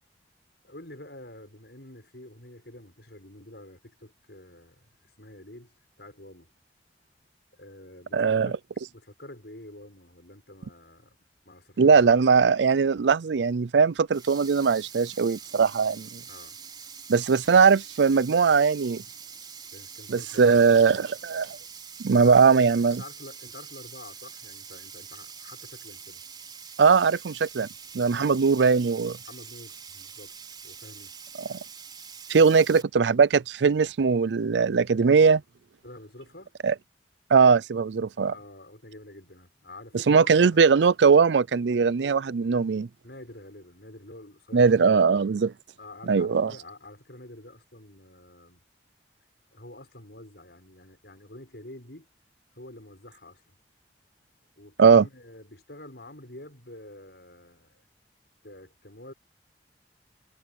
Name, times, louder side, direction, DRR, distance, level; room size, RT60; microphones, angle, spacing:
voice 1, 0.6-6.5 7.5-8.5 8.9-11.2 11.4-12.1 16.3-16.6 19.7-21.1 22.1-22.3 23.0-26.2 28.1-28.4 29.2-30.3 30.6-31.2 35.8-36.5 38.3-40.7 43.0-45.1 45.8-48.6 49.5-52.1 52.6-53.4 54.6-57.9 58.4-59.1, left 1 dB, 70° left, 7.1 m, -47 dB
voice 2, 8.1-8.5 11.8-16.2 17.1-19.0 20.1-21.6 22.0-23.0 26.8-27.7 27.9-29.2 32.3-35.4 36.6-36.7 37.3-38.3 40.1-42.9 44.5-45.5 46.1-46.5 54.8-55.0, right 5 dB, 85° right, 0.5 m, -20 dB
Sink (filling or washing), 14.0-32.8, right 6 dB, 25° right, 4.7 m, -44 dB
head